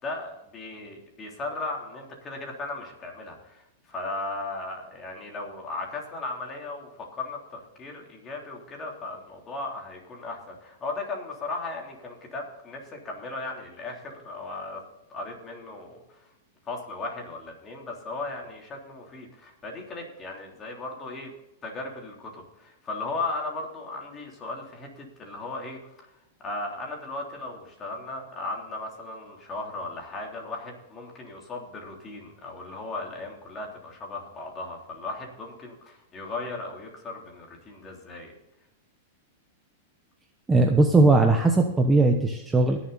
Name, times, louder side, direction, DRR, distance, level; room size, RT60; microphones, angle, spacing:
voice 1, 0.0-14.8 15.1-16.2 16.7-21.3 21.6-25.8 26.4-38.3, left 2 dB, 20° left, 0 dB, 3.6 m, -36 dB
voice 2, 40.5-42.8, right 2 dB, 10° right, 3 dB, 1.1 m, -19 dB
21.0 x 7.2 x 4.2 m, 0.89 s
supercardioid pair, 145°, 0 cm